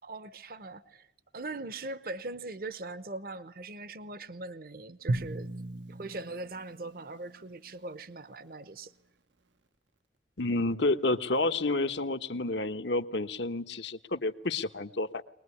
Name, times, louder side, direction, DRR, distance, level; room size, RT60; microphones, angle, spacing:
voice 1, 0.0-1.1 1.3-5.5 5.9-8.9, right 2 dB, 50° right, 0.9 m, -41 dB
Drum, 5.1-8.0, right 2 dB, 80° right, 0.9 m, -37 dB
voice 2, 10.4-15.2, left 2 dB, 75° left, 1.3 m, -30 dB
23.0 x 20.5 x 9.9 m
head